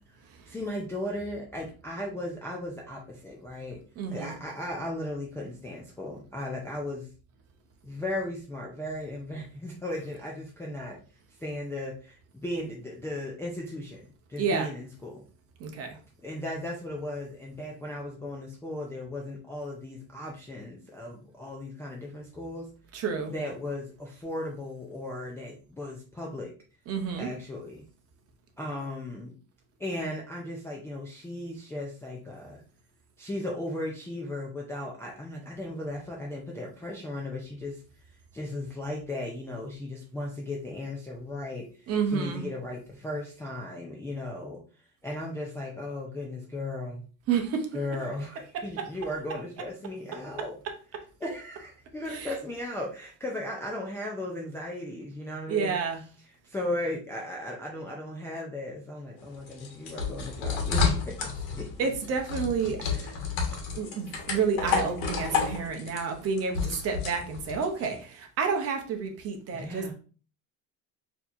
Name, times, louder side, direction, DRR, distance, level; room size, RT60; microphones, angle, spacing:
voice 1, 0.5-3.8 4.1-7.1 7.8-11.0 11.4-15.2 16.2-22.7 23.3-26.5 27.2-27.8 28.6-29.3 29.8-32.6 33.2-37.8 38.3-44.6 45.0-47.0 47.7-50.6 51.2-55.8 56.4-61.9 62.8-63.2 69.5-69.9, left 1 dB, 5° left, -2 dB, 0.3 m, -36 dB
voice 2, 4.0-4.4 14.4-14.7 15.6-16.0 22.9-23.3 26.9-27.3 41.9-42.5 47.3-47.7 48.8-48.9 52.1-52.3 55.5-56.0 61.8-62.8 63.7-69.9, right 5 dB, 40° right, 5 dB, 0.7 m, -29 dB
sound 1, 59.2-67.9, left 5 dB, 70° left, 1.1 m, -31 dB
4.3 x 2.8 x 2.5 m, 0.37 s
cardioid pair, 155°, 37 cm